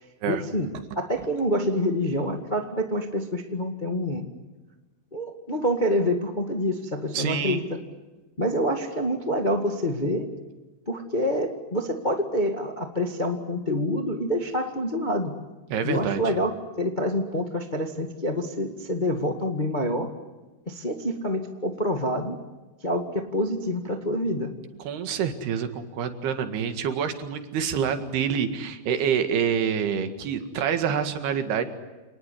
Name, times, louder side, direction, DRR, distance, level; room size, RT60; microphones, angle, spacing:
voice 1, 0.2-0.7 0.9-4.3 5.1-7.8 8.4-10.3 10.9-15.4 15.8-20.1 20.7-22.4 22.8-24.5, equal, 25° left, 4 dB, 0.9 m, -27 dB
voice 2, 7.1-7.6 15.7-16.2 24.9-31.7, right 7 dB, 90° right, 7 dB, 4.0 m, -27 dB
28.0 x 19.5 x 9.9 m, 1.2 s
omnidirectional pair, 4.5 m